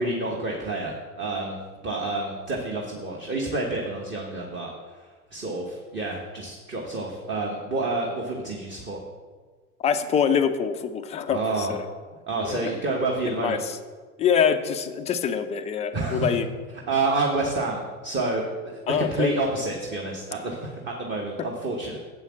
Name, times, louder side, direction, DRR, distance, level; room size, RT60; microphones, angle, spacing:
voice 1, 0.0-1.6 1.8-4.7 5.3-9.0 11.3-11.7 12.3-13.6 15.9-16.4 16.9-22.0, right 2 dB, 25° right, -1 dB, 1.3 m, -28 dB
voice 2, 9.8-11.9 12.4-12.7 13.2-13.8 14.2-16.5 18.9-19.4 21.4-21.5, left 7 dB, 15° left, 8 dB, 0.4 m, -25 dB
7.4 x 5.5 x 7.4 m, 1.5 s
hypercardioid pair, 90°, 45 cm